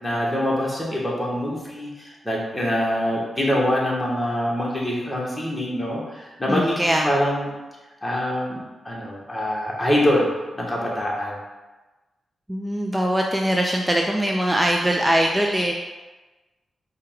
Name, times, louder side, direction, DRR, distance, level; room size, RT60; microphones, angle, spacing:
voice 1, 0.0-7.5 8.0-10.3 10.5-11.4, equal, 10° left, -5 dB, 1.2 m, -24 dB
voice 2, 6.5-7.1 12.5-15.7, right 1 dB, 10° right, 1 dB, 0.4 m, -22 dB
4.5 x 2.3 x 3.6 m, 1.2 s
supercardioid pair, 40°, 0 cm